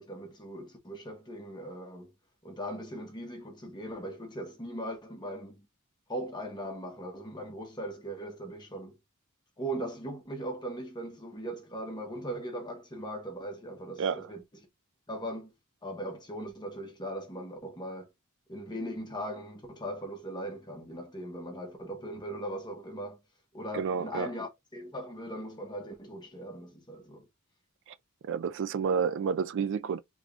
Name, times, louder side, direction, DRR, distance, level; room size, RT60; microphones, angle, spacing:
voice 1, 0.0-2.1 2.4-5.6 6.1-9.0 9.6-14.4 15.1-15.5 15.8-18.1 18.5-23.2 23.5-27.3, right 1 dB, 20° left, 1.1 m, -39 dB
voice 2, 23.7-24.3 27.9-28.0 28.3-30.0, right 6 dB, 60° right, 0.4 m, -30 dB
3.6 x 3.5 x 2.5 m
head